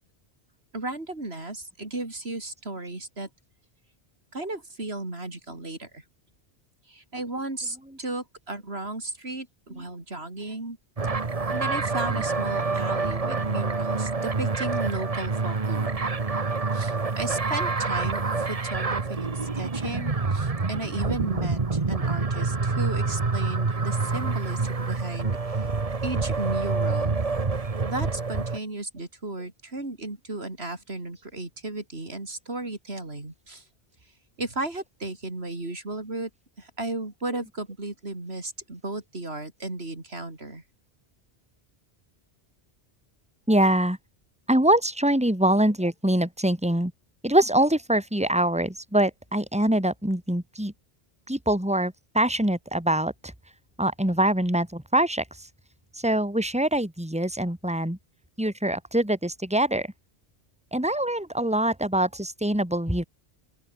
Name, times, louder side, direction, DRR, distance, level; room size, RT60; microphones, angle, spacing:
voice 1, 0.7-3.3 4.3-6.0 6.9-10.8 11.5-16.0 16.7-25.7 26.0-27.2 27.8-33.6 34.4-36.3 36.6-40.6, right 2 dB, 70° right, 4.5 m, -34 dB
sound 1, 11.0-28.6, right 4 dB, 35° right, 1.3 m, -27 dB
voice 2, 43.5-44.0 44.5-46.9 47.2-50.7 51.3-53.3 53.8-55.5 55.9-58.0 58.4-59.9 60.7-63.0, right 1 dB, 5° right, 3.5 m, -24 dB
open air
omnidirectional pair, 1.1 m